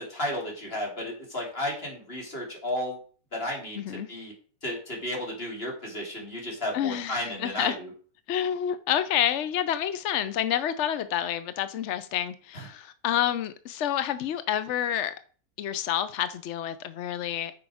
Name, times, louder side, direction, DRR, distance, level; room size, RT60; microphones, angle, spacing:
voice 1, 0.0-3.0 3.3-4.3 4.6-7.9, left 1 dB, 35° left, 3.2 m, -33 dB
voice 2, 3.8-4.1 6.7-7.8 8.3-15.1 15.6-17.5, left 10 dB, 70° left, 0.6 m, -28 dB
9.3 x 6.2 x 4.9 m
omnidirectional pair, 1.9 m